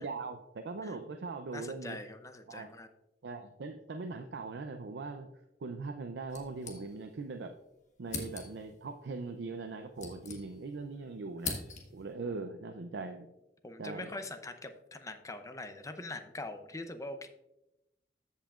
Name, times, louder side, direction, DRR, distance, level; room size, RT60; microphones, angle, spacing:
voice 1, 0.0-2.0 2.5-2.7 3.2-5.3 5.6-7.5 8.0-11.6 11.9-13.3 13.8-14.1, right 3 dB, 70° right, 7 dB, 0.5 m, -40 dB
voice 2, 1.5-2.9 13.6-17.3, left 2 dB, 20° left, 8 dB, 0.6 m, -43 dB
sound 1, 6.3-7.3 7.6-7.7 8.1-8.8 9.6-10.9 11.1-12.1, left 4 dB, 45° left, 1.4 m, -42 dB
14.0 x 5.6 x 2.4 m, 0.91 s
head